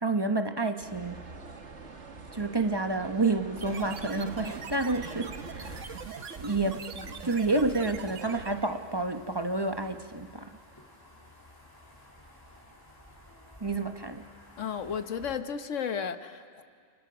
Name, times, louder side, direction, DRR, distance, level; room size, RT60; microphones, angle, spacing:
voice 1, 0.0-1.2 2.3-6.0 6.4-6.8 7.1-10.5 13.6-14.3, right 2 dB, 20° right, 7 dB, 0.9 m, -29 dB
sound 1, 0.8-5.8, right 3 dB, 65° right, 2.0 m, -45 dB
sound 2, 3.6-8.8, right 6 dB, 85° right, 1.4 m, -41 dB
sound 3, 5.6-15.4, left 1 dB, 15° left, 2.9 m, -53 dB
voice 2, 14.6-16.6, left 7 dB, 85° left, 9 dB, 1.4 m, -34 dB
29.5 x 27.5 x 6.1 m, 2.1 s
omnidirectional pair, 1.2 m